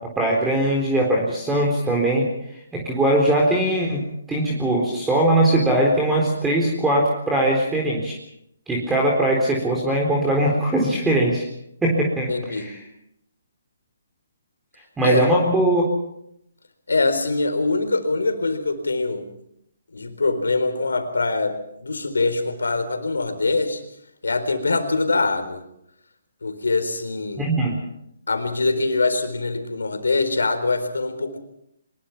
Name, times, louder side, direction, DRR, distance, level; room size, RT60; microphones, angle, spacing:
voice 1, 0.2-2.3 2.7-8.2 8.7-11.5 11.8-12.8 15.0-15.8 27.4-27.8, right 1 dB, 10° right, -1 dB, 4.0 m, -20 dB
voice 2, 12.3-12.7 15.0-15.3 16.9-19.2 19.9-23.8 24.2-25.6 26.4-27.5 28.3-31.4, left 3 dB, 90° left, 8 dB, 4.1 m, -23 dB
24.0 x 21.5 x 6.0 m, 0.77 s
hypercardioid pair, 150°, 0 cm